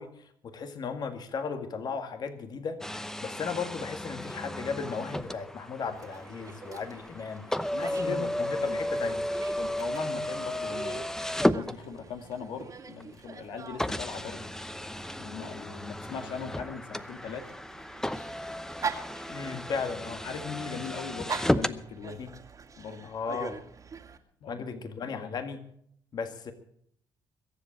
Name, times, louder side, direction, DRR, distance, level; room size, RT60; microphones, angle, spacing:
voice 1, 0.0-9.2 19.3-20.2 22.2-22.3 23.0-23.6 24.5-25.6 26.1-26.5, left 5 dB, 55° left, 7 dB, 1.9 m, -36 dB
sound 1, 2.8-12.3 13.0-13.1 13.8-21.8, left 1 dB, 5° left, 0.8 m, -33 dB
Dog, 5.9-24.2, right 5 dB, 40° right, 2.2 m, -44 dB
voice 2, 7.7-8.8 9.6-11.1 11.5-14.4 15.2-17.5 20.2-22.2 22.8-23.1 24.4-25.3, left 6 dB, 75° left, 6 dB, 1.9 m, -40 dB
22.5 x 7.7 x 7.4 m, 0.67 s
cardioid pair, 85°, 9 cm